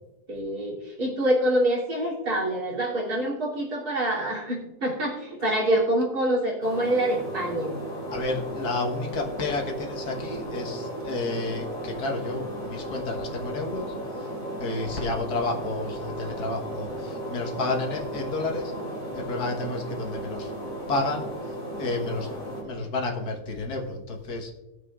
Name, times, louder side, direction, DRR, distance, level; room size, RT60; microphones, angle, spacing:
voice 1, 0.3-7.8, right 1 dB, 75° right, -4 dB, 3.6 m, -26 dB
sound 1, 6.6-22.6, right 1 dB, 30° left, 3.4 m, -35 dB
voice 2, 8.1-13.9 14.6-18.7 19.2-20.5 20.9-21.3 21.8-22.4 22.6-24.5, left 2 dB, 75° left, 1 dB, 1.9 m, -31 dB
19.0 x 7.6 x 2.4 m, 1.1 s
omnidirectional pair, 1.7 m